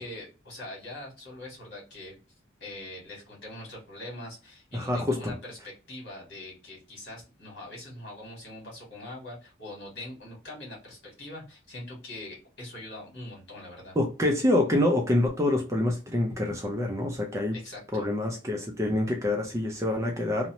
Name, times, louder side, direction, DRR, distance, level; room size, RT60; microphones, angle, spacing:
voice 1, 0.0-2.2 2.6-14.0 17.5-18.1, left 1 dB, 60° left, 1.5 m, -43 dB
voice 2, 4.7-5.3 14.0-17.6 17.9-20.5, left 1 dB, 15° right, 0.4 m, -26 dB
2.6 x 2.0 x 2.8 m
head